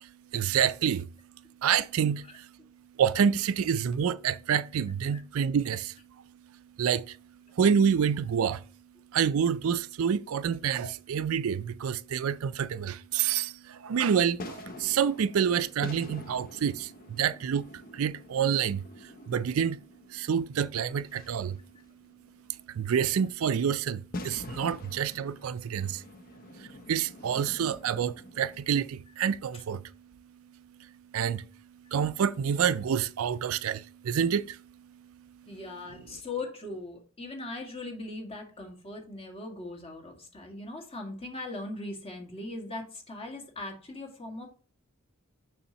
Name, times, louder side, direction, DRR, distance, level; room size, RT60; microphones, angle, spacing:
voice 1, 0.0-1.1 1.6-2.5 3.0-6.0 6.8-7.2 7.5-8.7 9.1-19.8 20.1-21.6 22.7-26.0 26.5-29.9 30.8-35.6, right 7 dB, 75° right, 0.4 m, -28 dB
sound 1, 14.1-28.7, left 2 dB, 45° left, 0.6 m, -46 dB
voice 2, 35.5-44.5, left 2 dB, 30° left, 1.8 m, -40 dB
6.8 x 6.2 x 2.9 m
head